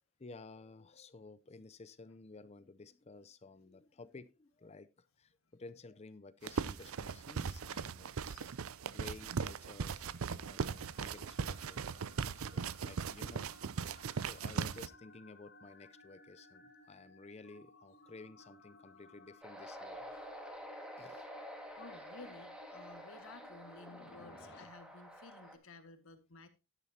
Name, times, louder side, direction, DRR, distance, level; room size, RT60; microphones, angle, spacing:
voice 1, 0.2-8.2 8.9-20.1 21.0-21.3, left 3 dB, 30° left, 0.5 m, -54 dB
sound 1, 6.4-14.9, right 6 dB, 85° right, 0.5 m, -39 dB
voice 2, 8.2-8.6 20.1-20.4 21.8-26.5, left 3 dB, 80° left, 1.7 m, -55 dB
sound 2, 9.6-24.6, left 2 dB, 55° left, 1.8 m, -60 dB
sound 3, 19.4-25.6, equal, 5° right, 1.7 m, -49 dB
11.5 x 10.5 x 2.8 m
head